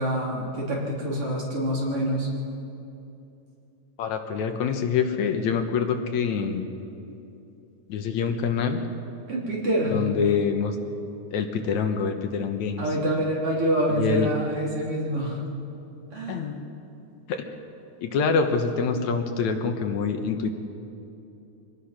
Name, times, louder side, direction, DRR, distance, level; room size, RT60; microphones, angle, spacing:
voice 1, 0.0-2.3 9.3-10.0 12.8-15.4 16.1-16.5, equal, 50° right, -4 dB, 4.3 m, -26 dB
voice 2, 4.0-6.7 7.9-8.8 9.9-10.8 11.3-12.8 14.0-14.3 16.3-16.6 17.3-17.4 18.0-20.5, left 6 dB, 75° left, 6 dB, 2.5 m, -25 dB
24.5 x 18.5 x 5.9 m, 2.8 s
omnidirectional pair, 3.3 m